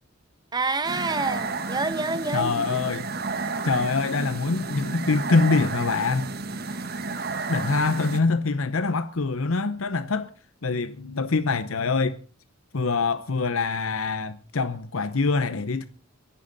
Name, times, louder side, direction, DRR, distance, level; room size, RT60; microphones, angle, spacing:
voice 1, 0.5-2.8, right 3 dB, 20° right, 1.0 m, -28 dB
sound 1, 0.8-8.2, right 3 dB, 45° right, 1.6 m, -32 dB
voice 2, 2.3-3.1 3.6-6.3 7.5-10.3 10.6-12.2 12.7-15.8, left 4 dB, 75° left, 0.8 m, -24 dB
23.0 x 11.5 x 4.1 m
head